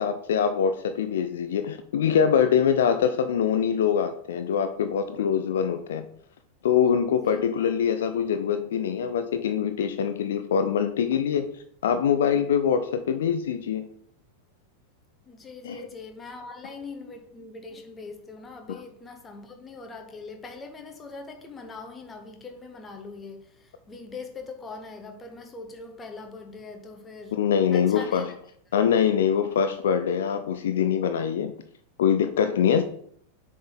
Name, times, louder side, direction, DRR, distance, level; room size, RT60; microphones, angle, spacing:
voice 1, 0.0-6.1 6.6-11.5 11.8-13.8 15.6-15.9 27.3-28.3 28.7-31.5 32.0-32.8, left 8 dB, 60° left, 0.4 m, -24 dB
voice 2, 7.1-7.4 15.3-27.4 27.7-28.3, left 3 dB, 15° left, 1.1 m, -42 dB
6.7 x 3.8 x 4.0 m
figure-of-eight pair, 90°, 0 cm